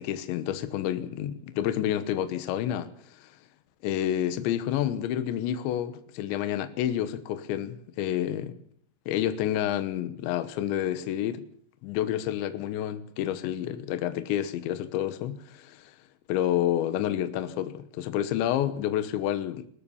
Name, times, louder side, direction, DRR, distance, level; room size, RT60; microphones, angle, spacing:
voice 1, 0.0-3.3 3.8-8.6 9.1-11.4 11.8-16.0 16.3-19.7, left 11 dB, 80° left, 3.4 m, -29 dB
22.0 x 18.5 x 7.1 m
omnidirectional pair, 5.2 m